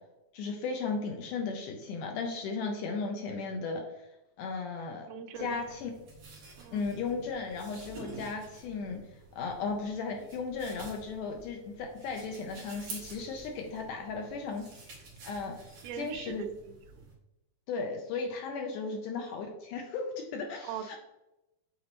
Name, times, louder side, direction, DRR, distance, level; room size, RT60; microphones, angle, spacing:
voice 1, 0.3-3.8 4.4-5.1 5.4-5.9 6.7-9.0 9.3-15.0 15.2-15.6 16.0-16.5 17.7-21.0, left 4 dB, 80° left, 2 dB, 1.9 m, -35 dB
voice 2, 5.1-5.6 6.6-6.8 14.6-14.7 15.8-17.1 18.9-19.0 20.6-21.0, right 8 dB, 90° right, 7 dB, 2.5 m, -42 dB
sound 1, 5.3-17.1, right 3 dB, 50° right, 2.6 m, -49 dB
8.6 x 3.9 x 2.9 m, 0.94 s
omnidirectional pair, 4.2 m